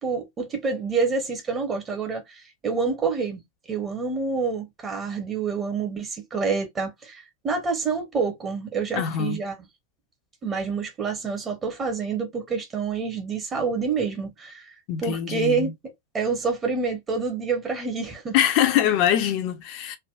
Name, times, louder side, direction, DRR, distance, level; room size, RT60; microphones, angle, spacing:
voice 1, 0.0-3.4 3.7-9.6 10.4-14.7 15.0-15.7 16.1-18.4, right 4 dB, 20° right, 0.9 m, -27 dB
voice 2, 9.0-9.4 14.9-15.7 18.3-20.0, left 10 dB, 45° left, 0.6 m, -23 dB
3.4 x 2.2 x 2.3 m
figure-of-eight pair, 90°, 0 cm